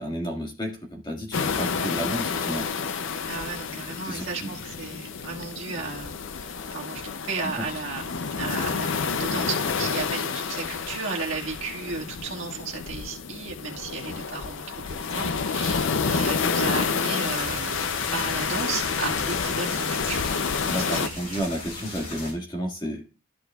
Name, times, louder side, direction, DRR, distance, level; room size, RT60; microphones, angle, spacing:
voice 1, 0.0-2.7 4.0-4.5 7.4-7.8 20.7-23.0, equal, 20° left, 2 dB, 1.7 m, -32 dB
sound 1, 1.3-21.1, left 5 dB, 60° left, 0.5 m, -29 dB
voice 2, 3.2-14.6 15.0-17.8 18.1-20.3 20.9-21.4, right 4 dB, 60° right, -1 dB, 1.8 m, -34 dB
sound 2, 17.2-22.3, left 2 dB, 85° left, 4.6 m, -37 dB
13.5 x 6.4 x 2.3 m, 0.32 s
head